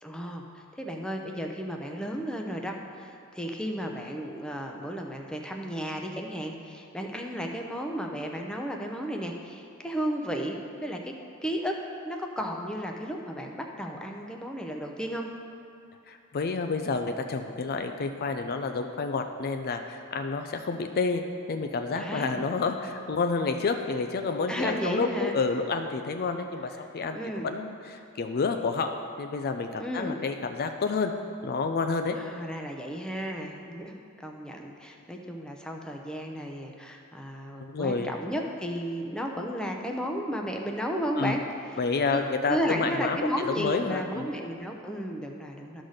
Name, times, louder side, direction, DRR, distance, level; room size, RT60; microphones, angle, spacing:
voice 1, 0.0-11.1 11.4-11.8 12.0-15.3 21.9-22.5 24.5-25.4 27.1-27.5 29.8-30.2 32.1-41.4 42.1-45.8, equal, 5° left, 1 dB, 0.6 m, -33 dB
voice 2, 16.1-21.2 21.5-27.2 27.4-31.1 31.4-32.2 37.7-38.1 41.2-41.3 41.8-44.3, left 4 dB, 45° left, 6 dB, 0.4 m, -29 dB
12.0 x 4.0 x 6.4 m, 2.5 s
head